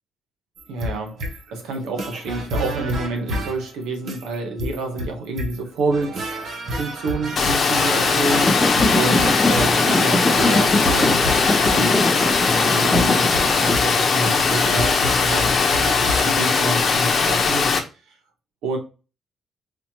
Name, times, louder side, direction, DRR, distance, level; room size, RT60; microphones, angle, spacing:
sound 1, 0.6-16.2, equal, 60° right, 1.1 m, -30 dB
voice 1, 0.7-6.4 6.7-11.3 11.7-12.1 12.5-15.6 15.9-17.7 18.6-18.8, right 3 dB, 90° right, 1.2 m, -28 dB
Water, 7.4-17.8, left 5 dB, 50° left, 0.8 m, -19 dB
sound 2, 8.3-13.8, left 2 dB, 15° left, 0.5 m, -22 dB
4.2 x 2.9 x 2.9 m
cardioid pair, 90°, 0 cm